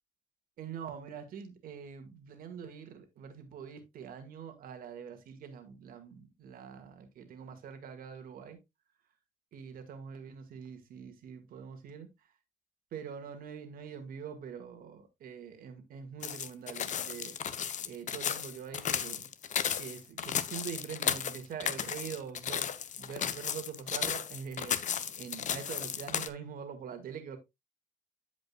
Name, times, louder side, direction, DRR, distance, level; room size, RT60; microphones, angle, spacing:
voice 1, 0.6-8.6 9.5-12.1 12.9-17.4 17.8-19.3 19.8-27.4, right 7 dB, 85° right, 1.8 m, -44 dB
Footsteps Walking On Gravel Stones Medium Pace, 16.2-26.3, left 8 dB, 55° left, 0.7 m, -34 dB
14.0 x 5.2 x 2.3 m
cardioid pair, 95°, 15 cm